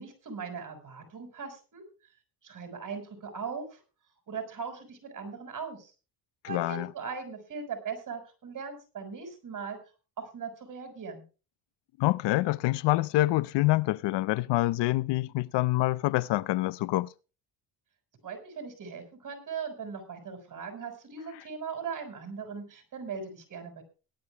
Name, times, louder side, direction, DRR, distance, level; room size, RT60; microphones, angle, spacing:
voice 1, 0.0-1.8 2.4-3.8 4.3-5.9 6.5-9.8 10.2-11.2 18.2-23.8, right 5 dB, 50° right, 6.0 m, -39 dB
voice 2, 6.4-6.9 12.0-17.1, left 18 dB, 85° left, 0.6 m, -26 dB
18.0 x 12.0 x 3.5 m
cardioid pair, 110°, 41 cm